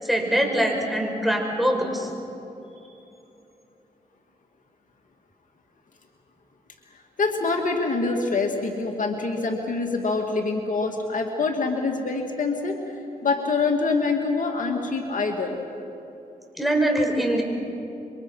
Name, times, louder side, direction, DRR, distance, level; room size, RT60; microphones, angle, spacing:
voice 1, 0.0-2.1 16.6-17.4, right 1 dB, ahead, 1 dB, 5.6 m, -23 dB
voice 2, 6.9-12.9 13.2-15.6, left 3 dB, 60° left, 2 dB, 2.3 m, -25 dB
27.0 x 24.5 x 5.7 m, 2.9 s
cardioid pair, 55°, 15 cm